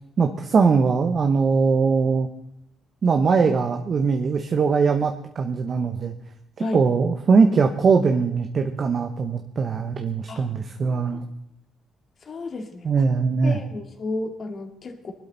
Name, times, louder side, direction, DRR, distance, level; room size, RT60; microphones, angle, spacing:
voice 1, 0.2-2.3 3.0-6.1 6.7-11.2 12.8-13.6, right 5 dB, 50° right, 6 dB, 1.1 m, -21 dB
voice 2, 12.3-12.8 13.4-15.1, left 2 dB, 50° left, 5 dB, 2.2 m, -32 dB
20.5 x 12.0 x 4.1 m, 0.78 s
cardioid pair, 90°, 0 cm